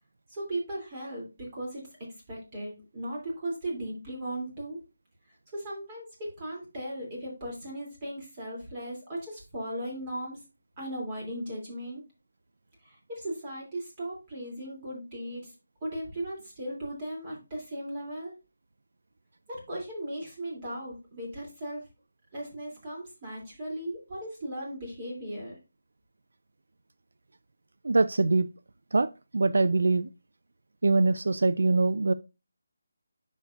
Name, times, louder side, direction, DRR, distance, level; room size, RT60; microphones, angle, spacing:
voice 1, 0.3-4.8 5.5-10.4 10.8-12.0 12.8-15.5 15.8-18.4 19.5-21.9 22.3-25.6, right 1 dB, 20° right, 2.8 m, -37 dB
voice 2, 27.8-28.5 28.9-30.1 30.8-32.1, right 3 dB, 70° right, 0.4 m, -23 dB
8.3 x 6.3 x 2.5 m
figure-of-eight pair, 170°, 0 cm